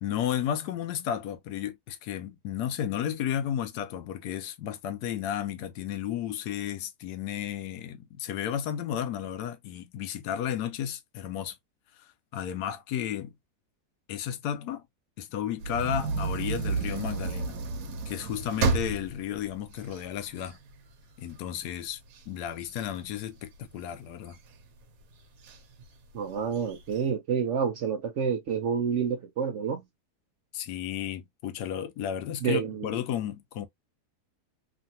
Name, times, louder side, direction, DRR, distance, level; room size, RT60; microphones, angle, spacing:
voice 1, 0.0-11.6 12.3-13.4 14.1-14.8 15.2-17.6 18.1-20.6 21.2-22.0 22.3-24.4 30.5-33.7, left 10 dB, 85° left, 1.2 m, -33 dB
sound 1, 15.6-20.8 21.3-21.4 21.7-23.8 24.3-24.8 25.4-25.6 25.9-26.0 26.4-27.0, right 4 dB, 85° right, 1.3 m, -31 dB
voice 2, 26.1-29.8 32.4-32.9, right 7 dB, 65° right, 0.7 m, -28 dB
2.9 x 2.5 x 2.7 m
omnidirectional pair, 1.7 m